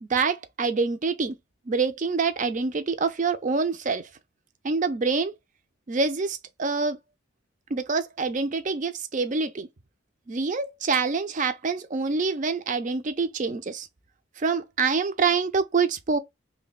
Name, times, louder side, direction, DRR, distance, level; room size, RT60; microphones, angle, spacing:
voice 1, 0.0-1.3 1.7-4.1 4.6-5.3 5.9-7.0 7.7-9.7 10.3-13.9 14.4-16.2, right 4 dB, 35° right, 0.4 m, -26 dB
3.1 x 2.2 x 4.0 m
head